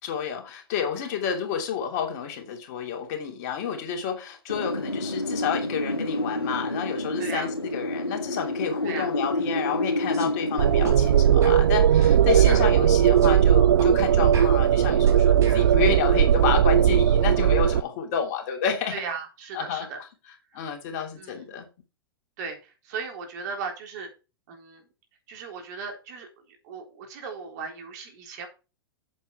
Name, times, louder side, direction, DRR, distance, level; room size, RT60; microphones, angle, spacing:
voice 1, 0.0-19.0 19.5-19.9 20.5-21.7, left 7 dB, 45° left, 2.9 m, -30 dB
Wind, 4.5-13.2, left 1 dB, 90° left, 0.8 m, -30 dB
voice 2, 7.2-7.5 8.8-9.1 12.5-12.6 18.9-20.0 21.2-21.4 22.4-24.1 24.5-24.8 25.3-26.3 26.6-28.5, right 5 dB, 45° right, 3.8 m, -36 dB
sound 1, 10.1-10.3 10.8-11.0 11.4-11.6 12.0-12.1 12.4-13.4 13.8-13.9 14.3-15.7, right 3 dB, 25° right, 4.1 m, -38 dB
sound 2, 10.6-17.8, right 10 dB, 65° right, 0.4 m, -18 dB
8.4 x 7.3 x 4.8 m
figure-of-eight pair, 100°, 12 cm